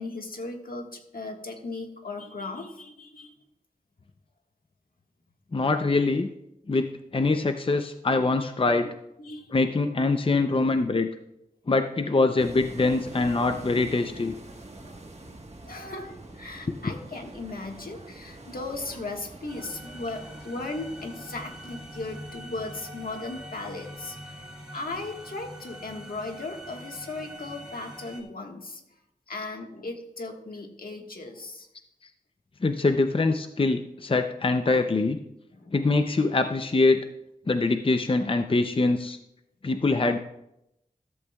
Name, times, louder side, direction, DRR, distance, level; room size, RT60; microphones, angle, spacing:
voice 1, 0.0-3.3 8.8-8.9 9.2-9.5 14.8-15.0 15.3-24.4 24.7-29.0 29.3-31.7 35.5-36.0, left 2 dB, 75° left, 2 dB, 1.6 m, -37 dB
voice 2, 5.5-6.3 6.7-6.9 7.1-8.9 9.5-11.1 11.7-14.3 32.6-35.2 35.7-37.0 37.5-39.2 39.6-40.2, left 3 dB, 35° left, 7 dB, 0.6 m, -23 dB
sound 1, 12.4-25.2, right 2 dB, 45° right, 1.4 m, -46 dB
sound 2, 19.5-28.2, equal, 5° right, 3.1 m, -44 dB
14.0 x 13.5 x 2.3 m, 0.84 s
wide cardioid pair, 75°, 15 cm